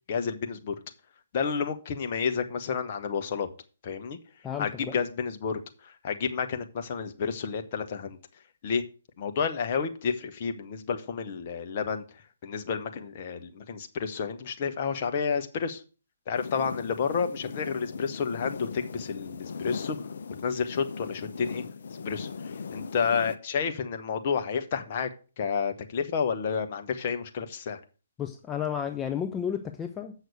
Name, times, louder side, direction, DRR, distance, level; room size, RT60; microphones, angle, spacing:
voice 1, 0.1-0.7 1.3-3.5 3.8-4.2 4.6-8.2 8.6-8.8 9.2-12.0 12.4-15.8 16.3-20.0 20.4-21.6 22.0-25.1 25.4-27.8, left 6 dB, 40° left, 1.3 m, -30 dB
voice 2, 4.4-5.0 28.2-30.1, left 8 dB, 15° left, 0.6 m, -32 dB
sound 1, 16.3-23.4, left 5 dB, 60° left, 0.6 m, -39 dB
7.9 x 6.4 x 6.7 m
figure-of-eight pair, 130°, 0 cm